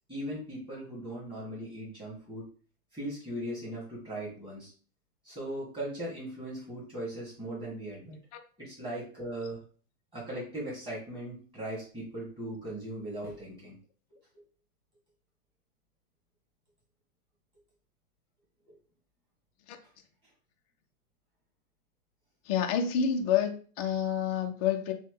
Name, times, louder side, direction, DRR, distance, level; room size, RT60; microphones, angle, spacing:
voice 1, 0.1-2.5 2.9-4.7 5.2-8.2 8.6-9.6 10.1-13.8 18.7-18.8, right 1 dB, 10° right, -8 dB, 2.2 m, -39 dB
voice 2, 22.4-24.9, left 8 dB, 30° left, 4 dB, 0.4 m, -28 dB
6.7 x 2.3 x 3.3 m, 0.41 s
hypercardioid pair, 140°, 44 cm